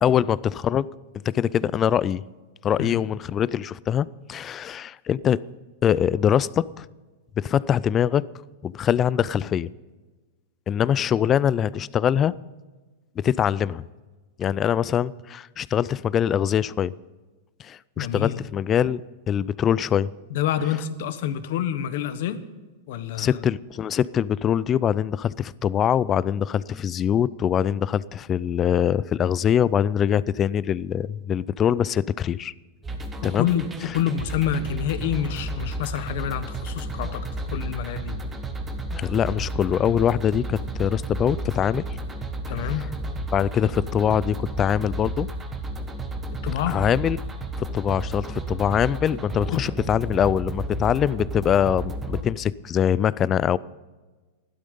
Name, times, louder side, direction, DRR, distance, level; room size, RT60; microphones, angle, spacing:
voice 1, 0.0-0.9 1.3-2.2 2.6-5.4 5.8-6.9 7.4-8.3 8.6-9.7 10.7-12.3 13.2-13.8 14.4-16.9 17.6-19.0 19.3-20.1 23.2-32.5 33.2-33.5 38.9-41.9 42.6-42.7 43.3-45.3 46.7-47.2 47.6-53.6, left 9 dB, 25° left, 20 dB, 0.4 m, -23 dB
voice 2, 18.0-18.4 20.3-22.4 22.9-23.4 33.2-33.7 33.9-38.2 42.5-42.8 46.4-46.8 49.5-49.6, left 9 dB, 65° left, 12 dB, 1.1 m, -27 dB
sound 1, 32.8-52.2, right 1 dB, 15° right, 1.5 m, -32 dB
15.5 x 12.5 x 5.5 m, 1.3 s
supercardioid pair, 140°, 0 cm